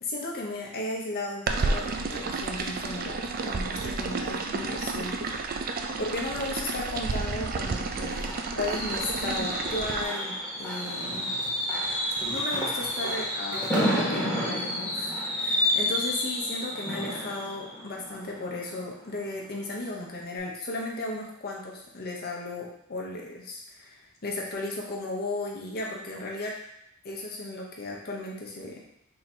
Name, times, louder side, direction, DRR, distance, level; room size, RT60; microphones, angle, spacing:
voice 1, 0.0-8.3 8.6-11.3 12.3-26.5 27.0-28.8, left 2 dB, 45° left, -2 dB, 0.9 m, -35 dB
sound 1, 1.5-10.0, right 3 dB, 40° right, 0.4 m, -31 dB
Fireworks, 7.6-19.3 19.7-19.9 20.2-20.3, equal, 5° left, 1.6 m, -30 dB
sound 2, 8.9-9.0 10.8-14.2, right 1 dB, 20° right, 0.8 m, -39 dB
3.7 x 2.9 x 4.4 m, 0.77 s
head